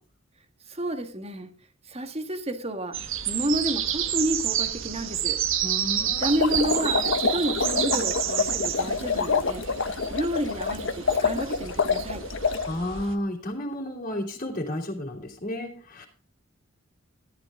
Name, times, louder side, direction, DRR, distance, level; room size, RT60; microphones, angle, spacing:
voice 1, 0.7-1.5 1.9-3.0 3.3-5.4 6.0-9.6 10.1-12.3, right 1 dB, 30° right, 1.7 m, -30 dB
sound 1, 2.9-13.1, right 10 dB, 65° right, 1.4 m, -30 dB
voice 2, 5.6-6.4 12.6-16.1, left 1 dB, 40° left, 3.3 m, -32 dB
sound 2, 6.2-12.7, left 4 dB, 65° left, 1.1 m, -26 dB
13.5 x 11.5 x 3.7 m
head